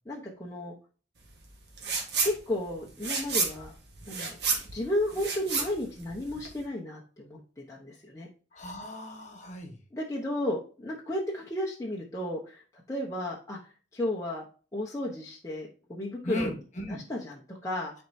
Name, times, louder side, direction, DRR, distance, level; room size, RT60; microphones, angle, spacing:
voice 1, 0.0-0.7 2.2-3.7 4.1-4.4 4.7-7.4 7.7-8.3 9.9-14.4 14.7-16.5 16.9-17.9, left 1 dB, 15° left, -4 dB, 1.0 m, -33 dB
sound 1, 1.8-2.4 2.7-6.6, right 5 dB, 55° right, 1.6 m, -30 dB
voice 2, 8.5-9.8 16.2-17.0, left 1 dB, 40° left, 3 dB, 1.5 m, -36 dB
10.0 x 4.5 x 2.7 m, 0.38 s
head